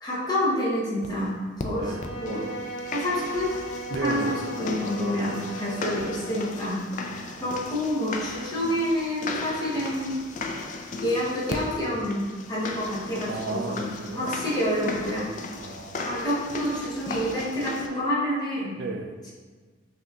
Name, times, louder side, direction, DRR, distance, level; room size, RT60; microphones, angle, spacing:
voice 1, 0.0-1.9 2.2-2.5 2.9-3.5 4.0-6.8 7.4-10.2 11.0-15.3 16.0-18.8, equal, 20° left, -7 dB, 0.9 m, -28 dB
sound 1, 1.0-1.1 1.6-1.7 2.0-17.9, left 3 dB, 40° left, 0.3 m, -36 dB
Bowed string instrument, 1.7-6.7, right 1 dB, 80° left, 1.1 m, -37 dB
voice 2, 3.9-4.4 5.1-5.2 7.1-7.6 13.3-14.3 15.6-16.1 18.8-19.1, right 3 dB, 60° right, 6 dB, 0.3 m, -34 dB
5.8 x 2.8 x 2.3 m, 1.4 s
head